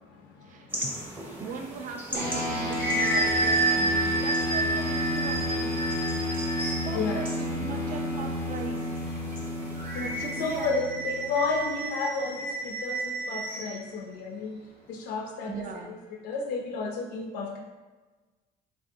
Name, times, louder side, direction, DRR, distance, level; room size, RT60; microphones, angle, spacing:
voice 1, 0.4-5.8 6.1-6.3 6.8-8.9 10.2-10.8 15.5-15.9, right 5 dB, 50° right, 4 dB, 0.4 m, -39 dB
sound 1, 0.7-10.7, equal, 10° right, 0.7 m, -41 dB
sound 2, 2.1-11.9, left 1 dB, 70° right, 1.0 m, -31 dB
sound 3, 2.5-7.0 9.8-13.8, right 2 dB, 35° right, 1.0 m, -30 dB
voice 2, 6.9-7.3 7.6-7.8 10.0-10.1 10.4-14.6 14.9-16.0 16.2-17.6, left 4 dB, 85° left, 1 dB, 0.4 m, -32 dB
3.1 x 2.6 x 2.6 m, 1.3 s
cardioid pair, 110°, 17 cm